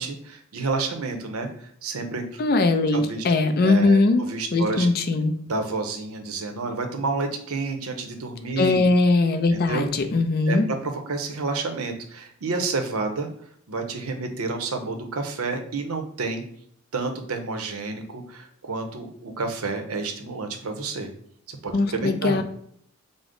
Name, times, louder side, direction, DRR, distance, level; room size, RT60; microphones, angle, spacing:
voice 1, 0.0-1.5 1.8-2.4 2.9-3.2 3.6-4.0 4.3-4.9 5.5-8.8 9.5-9.8 10.5-13.3 13.7-16.4 16.9-21.1 21.5-22.4, right 3 dB, 80° right, 5 dB, 0.7 m, -29 dB
voice 2, 2.4-4.2 4.5-5.3 8.6-10.7 21.7-22.4, left 3 dB, 45° left, 7 dB, 0.4 m, -20 dB
5.0 x 2.0 x 3.7 m, 0.64 s
head